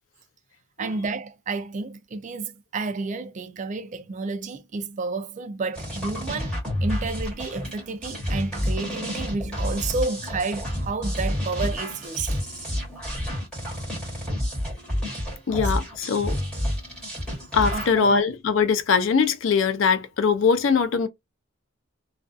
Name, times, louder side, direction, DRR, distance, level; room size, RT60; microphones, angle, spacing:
voice 1, 0.8-6.6 6.8-12.4 17.7-18.2, right 3 dB, 35° right, 0.3 m, -30 dB
sound 1, 5.7-18.0, equal, 5° left, 1.3 m, -29 dB
voice 2, 15.5-16.4 17.5-21.1, left 5 dB, 70° left, 0.4 m, -22 dB
2.4 x 2.3 x 2.4 m
head